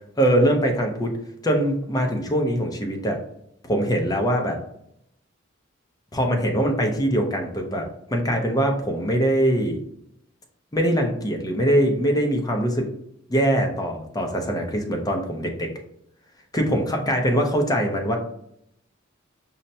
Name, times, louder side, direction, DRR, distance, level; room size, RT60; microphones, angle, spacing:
voice 1, 0.2-1.1 1.4-3.2 3.6-4.6 6.1-9.8 10.7-12.9 13.3-15.7 16.5-18.2, equal, 20° left, 2 dB, 0.6 m, -22 dB
5.6 x 2.1 x 2.7 m, 0.74 s
head